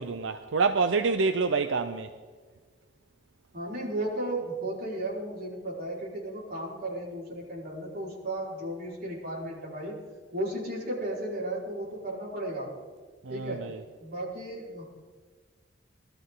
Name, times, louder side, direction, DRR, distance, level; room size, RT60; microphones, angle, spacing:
voice 1, 0.0-2.1 13.2-13.8, right 4 dB, 85° right, 0.6 m, -27 dB
voice 2, 3.5-9.9 10.3-12.7 13.3-13.7 14.0-14.9, right 1 dB, 55° right, 5.1 m, -34 dB
20.5 x 13.0 x 3.9 m
head